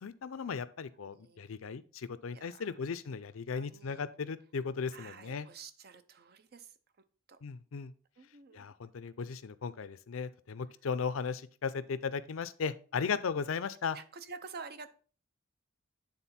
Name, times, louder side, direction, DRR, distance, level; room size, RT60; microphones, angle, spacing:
voice 1, 0.0-5.5 7.4-7.9 8.5-14.0, left 5 dB, 75° left, 15 dB, 0.5 m, -36 dB
voice 2, 1.0-1.4 2.3-2.8 3.5-4.0 4.9-6.7 7.3-7.4 8.2-8.7 13.9-14.9, right 5 dB, 50° right, 11 dB, 0.6 m, -49 dB
9.0 x 3.9 x 4.3 m, 0.41 s
head